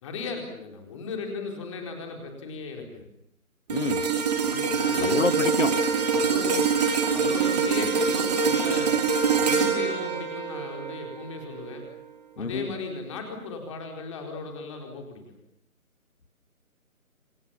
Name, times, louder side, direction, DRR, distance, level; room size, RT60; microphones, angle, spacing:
voice 1, 0.0-3.0 4.4-5.2 6.1-6.8 7.1-8.9 9.4-11.8 12.4-15.2, left 4 dB, 20° left, 3 dB, 4.3 m, -36 dB
voice 2, 3.7-4.0 5.0-5.7 12.4-12.7, left 4 dB, 60° left, 13 dB, 2.2 m, -28 dB
sound 1, 3.7-12.0 12.5-12.7, right 5 dB, 30° right, 2.8 m, -25 dB
28.5 x 24.5 x 7.2 m, 0.73 s
figure-of-eight pair, 155°, 43 cm